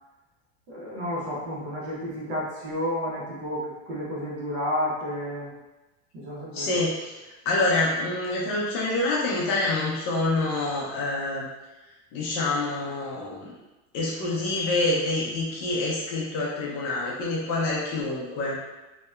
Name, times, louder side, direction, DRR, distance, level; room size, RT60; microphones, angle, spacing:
voice 1, 0.7-5.5 6.1-6.7, equal, 55° right, -6 dB, 0.9 m, -31 dB
voice 2, 6.5-7.2 7.5-11.5 12.1-13.5 13.9-18.6, left 2 dB, 40° left, -4 dB, 0.6 m, -26 dB
2.8 x 2.1 x 2.3 m, 1.1 s
supercardioid pair, 150°, 34 cm